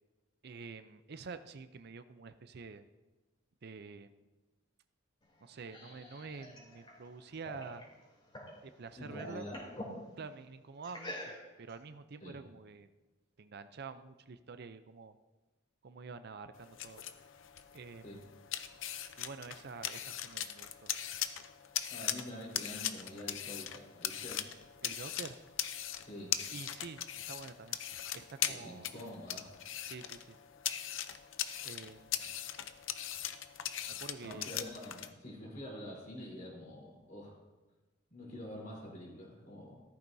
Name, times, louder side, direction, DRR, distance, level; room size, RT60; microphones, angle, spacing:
voice 1, 0.4-2.9 3.6-4.2 5.4-7.8 8.6-9.5 10.2-12.9 13.4-15.2 15.8-17.0 17.7-18.3 19.2-20.9 24.8-25.4 26.5-27.8 28.1-28.9 29.8-30.4 31.6-32.3 34.0-34.5, right 4 dB, 55° right, 11 dB, 0.5 m, -48 dB
sound 1, 5.2-8.6 8.9-10.0 10.8-11.7, equal, 25° left, 3.1 m, -47 dB
voice 2, 9.0-9.6 12.2-12.4 18.0-18.2 21.9-24.5 26.0-26.4 28.5-29.5 34.2-37.3 38.1-39.8, left 1 dB, 45° left, -3 dB, 3.8 m, -46 dB
sound 2, 16.5-35.1, left 10 dB, 80° left, 0.6 m, -40 dB
14.5 x 13.5 x 2.7 m, 1.1 s
head